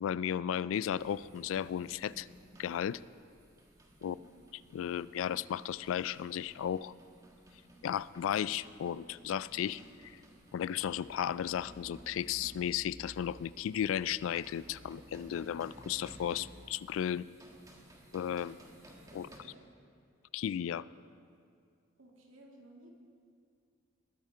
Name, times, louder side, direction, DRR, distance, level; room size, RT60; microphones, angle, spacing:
voice 1, 0.0-2.3 2.6-3.0 4.0-4.2 4.7-6.9 7.8-10.1 10.5-17.3 18.1-18.6 19.1-19.3 20.3-20.9, left 9 dB, 85° left, 19 dB, 0.3 m, -34 dB
sound 1, 1.0-19.4, right 1 dB, 20° right, 1.5 m, -57 dB
voice 2, 4.0-4.3 19.1-19.6 22.0-22.9, right 1 dB, 85° right, 0 dB, 2.2 m, -57 dB
sound 2, 10.8-16.6, equal, 40° right, 1.2 m, -57 dB
20.0 x 9.4 x 4.5 m, 2.3 s
head